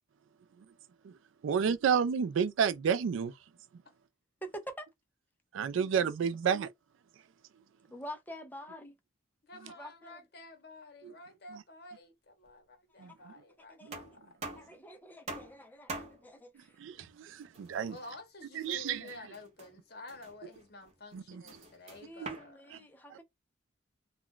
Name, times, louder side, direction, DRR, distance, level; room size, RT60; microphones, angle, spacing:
voice 1, 1.4-3.3 5.5-6.7 11.0-11.1 13.0-13.3 13.8-14.0 16.8-17.9 18.5-19.2 21.1-21.4 22.2-22.4 22.7-22.8 23.1-23.2, right 7 dB, 80° right, 0.3 m, -31 dB
voice 2, 4.4-4.9 7.9-9.0 9.7-10.2 13.0-13.1 13.7-13.9 14.5-16.8 22.0-23.2, equal, 10° left, 0.4 m, -46 dB
voice 3, 9.4-14.6 17.9-22.9, left 2 dB, 55° left, 0.8 m, -51 dB
sound 1, 12.4-12.5 13.9-14.8 15.3-15.6 15.9-16.3 17.4-18.2 18.7-19.8 20.1-22.5, right 3 dB, 35° right, 0.7 m, -45 dB
2.3 x 2.2 x 3.7 m
head